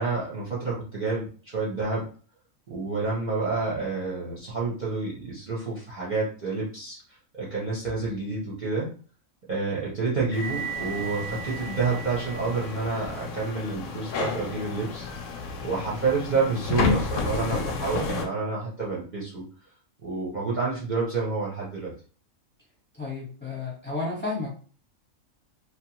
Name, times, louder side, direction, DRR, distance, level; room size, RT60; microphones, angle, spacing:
voice 1, 0.0-2.1 2.7-7.0 7.3-8.9 9.5-15.1 15.6-19.4 20.0-21.9, right 4 dB, 45° right, -6 dB, 0.7 m, -29 dB
sound 1, 10.3-18.3, left 3 dB, 75° left, 0.9 m, -31 dB
voice 2, 22.9-24.6, left 3 dB, 10° left, -4 dB, 0.8 m, -32 dB
2.8 x 2.2 x 2.8 m, 0.41 s
omnidirectional pair, 1.4 m